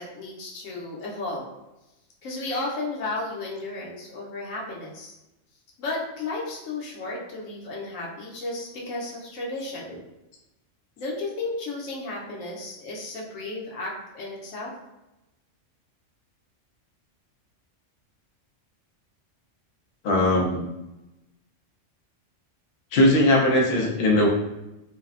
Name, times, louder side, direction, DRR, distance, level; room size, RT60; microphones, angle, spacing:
voice 1, 0.0-1.5 2.2-5.1 5.8-10.0 11.0-14.7, left 2 dB, 85° left, -3 dB, 1.1 m, -33 dB
voice 2, 20.0-20.6 22.9-24.3, left 1 dB, 60° left, -1 dB, 0.7 m, -19 dB
3.2 x 2.0 x 2.4 m, 0.96 s
omnidirectional pair, 1.3 m